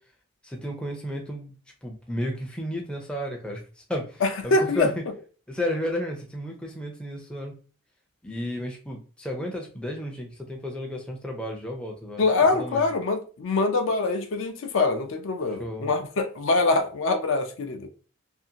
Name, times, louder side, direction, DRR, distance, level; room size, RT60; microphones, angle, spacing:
voice 1, 0.4-1.5 1.8-3.6 3.9-4.9 5.5-7.5 8.2-12.2 12.6-12.9 15.6-15.9, equal, 5° left, 0.4 m, -32 dB
voice 2, 4.2-4.9 12.2-17.9, left 3 dB, 65° left, 0.4 m, -24 dB
2.6 x 2.5 x 2.7 m
head